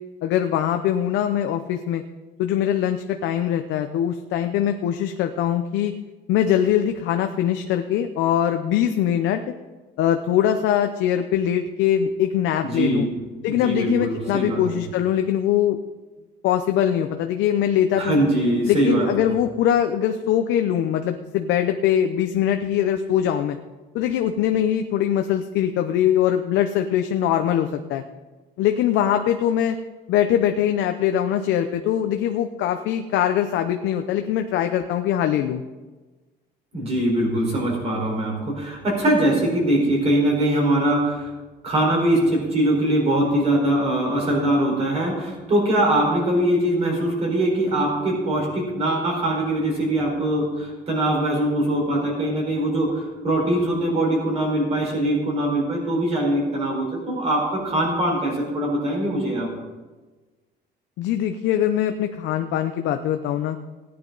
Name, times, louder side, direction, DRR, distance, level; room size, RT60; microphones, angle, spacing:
voice 1, 0.2-2.0 2.4-5.9 6.3-9.4 10.0-13.1 13.4-15.8 16.4-18.2 18.7-23.6 23.9-28.0 28.6-29.8 30.1-35.6 61.0-63.6, left 10 dB, 85° left, 6 dB, 0.7 m, -22 dB
voice 2, 12.6-13.1 13.4-14.6 17.9-19.3 36.7-41.3 41.6-59.5, right 1 dB, 35° right, -2 dB, 4.5 m, -22 dB
17.0 x 9.7 x 4.0 m, 1.2 s
cardioid pair, 175°, 19 cm